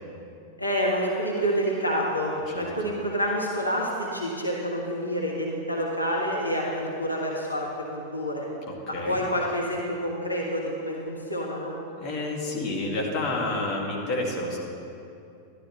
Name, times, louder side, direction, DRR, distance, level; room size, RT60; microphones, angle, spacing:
voice 1, 0.6-8.5 8.9-11.7, equal, 85° left, -3 dB, 1.1 m, -28 dB
voice 2, 12.0-14.6, left 2 dB, 35° left, -2 dB, 1.9 m, -29 dB
12.0 x 12.0 x 3.1 m, 2.6 s
figure-of-eight pair, 90°, 0 cm